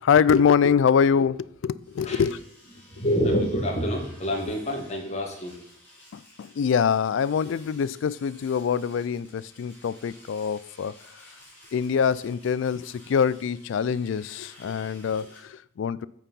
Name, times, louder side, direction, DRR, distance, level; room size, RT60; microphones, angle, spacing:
voice 1, 0.0-2.4 6.1-11.0 11.7-16.1, left 7 dB, 65° left, 18 dB, 0.3 m, -24 dB
Domestic sounds home sounds, 1.8-15.4, left 1 dB, 10° left, 2.8 m, -53 dB
voice 2, 2.9-5.5, equal, 35° left, 0 dB, 1.9 m, -27 dB
8.8 x 4.7 x 5.3 m, 0.71 s
head